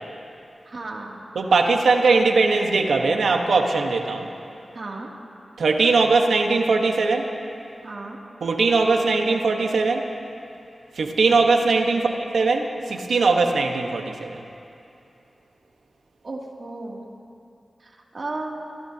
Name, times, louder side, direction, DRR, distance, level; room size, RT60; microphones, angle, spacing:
voice 1, 0.7-1.2 4.7-5.1 7.8-8.2 11.8-11.9 16.2-17.0 17.8-18.6, right 2 dB, 60° right, -2 dB, 2.8 m, -34 dB
voice 2, 1.3-4.3 5.6-7.3 8.4-10.1 11.0-14.4, right 3 dB, 90° right, 3 dB, 1.3 m, -20 dB
26.5 x 16.5 x 2.9 m, 2.7 s
cardioid pair, 45°, 0 cm